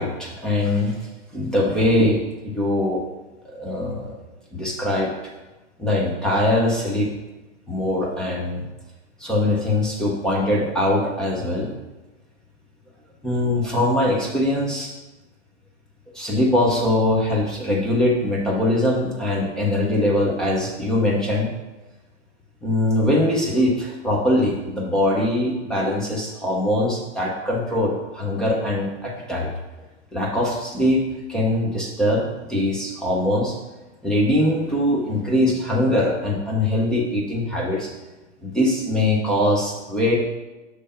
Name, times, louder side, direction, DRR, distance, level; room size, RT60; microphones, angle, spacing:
voice 1, 0.0-3.0 3.4-4.2 4.5-5.1 5.8-7.1 7.7-8.6 9.2-11.7 13.2-14.9 16.1-21.5 22.6-29.5 30.1-31.0 31.3-33.5 34.0-37.9 38.4-40.2, left 1 dB, ahead, -3 dB, 0.3 m, -22 dB
6.5 x 3.3 x 5.4 m, 1.1 s
hypercardioid pair, 130°, 37 cm